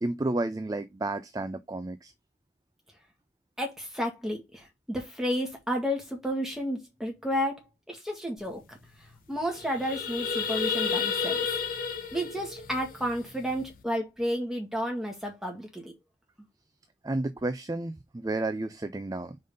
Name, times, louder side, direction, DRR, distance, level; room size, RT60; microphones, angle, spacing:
voice 1, 0.0-2.1 17.0-19.4, right 2 dB, 20° right, 0.4 m, -31 dB
voice 2, 3.6-8.8 9.3-11.4 12.1-15.9, equal, ahead, 1.8 m, -32 dB
sound 1, 8.5-8.6 8.8-9.1 9.4-13.7, left 6 dB, 50° left, 1.1 m, -32 dB
5.1 x 4.0 x 5.3 m
head